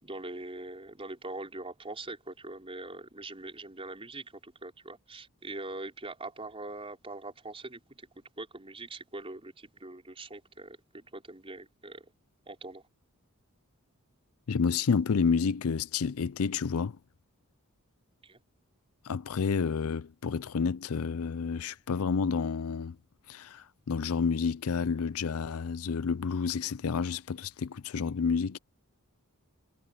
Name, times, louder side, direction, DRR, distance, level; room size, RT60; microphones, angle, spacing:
voice 1, 0.0-12.1 12.5-12.8 18.2-18.4, right 2 dB, 25° right, 4.2 m, -43 dB
voice 2, 14.5-17.0 19.0-23.0 23.3-28.6, left 5 dB, 70° left, 0.5 m, -30 dB
head